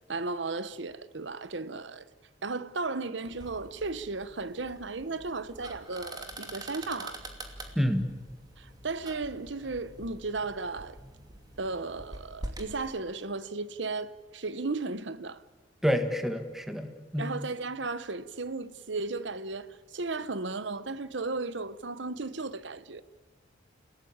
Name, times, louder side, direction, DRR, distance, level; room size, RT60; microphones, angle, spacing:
voice 1, 0.0-2.1 2.4-7.2 8.6-11.0 11.6-15.4 17.2-23.0, right 3 dB, 70° right, 1.0 m, -35 dB
sound 1, 3.3-12.7, right 1 dB, 20° right, 2.7 m, -45 dB
voice 2, 7.7-8.1 15.8-17.3, equal, ahead, 1.6 m, -28 dB
29.5 x 17.5 x 8.8 m
head